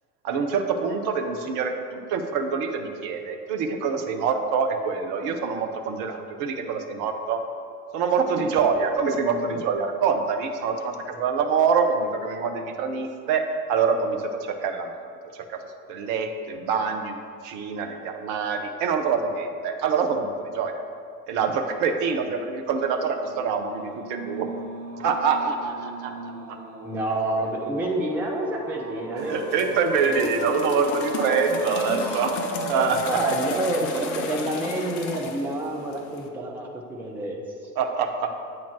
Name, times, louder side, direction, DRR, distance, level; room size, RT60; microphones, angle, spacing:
voice 1, 0.2-7.4 7.9-15.0 15.9-20.8 21.3-24.5 25.0-26.1 29.2-32.3 32.7-33.0 37.8-38.3, right 5 dB, 40° right, 6 dB, 0.7 m, -25 dB
sound 1, 23.1-33.4, right 2 dB, 75° right, 0.9 m, -35 dB
voice 2, 26.8-29.8 30.0-30.6 31.9-32.2 33.1-37.7, right 2 dB, 5° right, 0 dB, 0.3 m, -29 dB
sound 2, 29.2-36.3, left 5 dB, 35° left, 0.7 m, -35 dB
8.4 x 3.1 x 5.9 m, 2.4 s
figure-of-eight pair, 75°, 47 cm